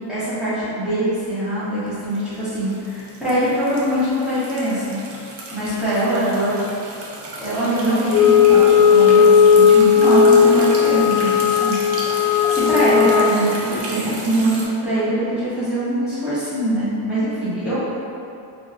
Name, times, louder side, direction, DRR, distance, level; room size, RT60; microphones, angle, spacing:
voice 1, 0.1-5.0 5.5-6.6 7.4-11.7 12.5-17.7, right 1 dB, ahead, -15 dB, 1.5 m, -22 dB
sound 1, 1.9-14.7, right 2 dB, 70° right, 0.7 m, -34 dB
Wind instrument woodwind instrument, 8.1-13.4, left 7 dB, 60° left, 0.5 m, -14 dB
4.3 x 3.0 x 2.4 m, 2.6 s
wide cardioid pair, 165°, 42 cm